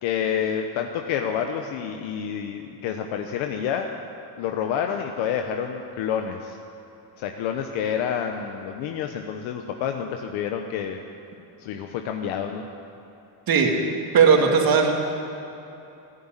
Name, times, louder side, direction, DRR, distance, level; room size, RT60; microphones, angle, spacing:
voice 1, 0.0-3.9 4.4-6.6 7.2-11.0 11.6-12.6, left 8 dB, 75° left, 4 dB, 1.1 m, -28 dB
voice 2, 14.1-14.9, right 6 dB, 45° right, 2 dB, 2.3 m, -17 dB
14.0 x 11.0 x 9.0 m, 2.9 s
cardioid pair, 115°, 47 cm